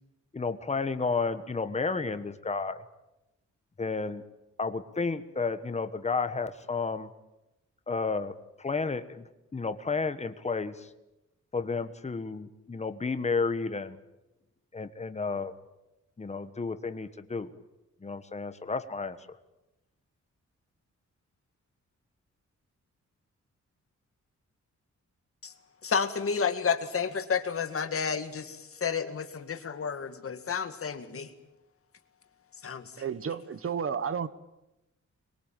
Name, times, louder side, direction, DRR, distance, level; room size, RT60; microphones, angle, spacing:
voice 1, 0.3-2.8 3.8-4.2 4.6-7.1 7.9-8.3 8.6-9.2 9.5-10.9 11.5-14.0 14.7-15.5 16.2-17.5 18.0-19.2, left 4 dB, 20° left, 1.3 m, -31 dB
voice 2, 25.8-31.3 32.6-33.0, left 6 dB, 45° left, 2.1 m, -31 dB
voice 3, 33.0-34.3, right 7 dB, 45° right, 1.1 m, -32 dB
26.0 x 22.0 x 9.0 m
wide cardioid pair, 175°, 30 cm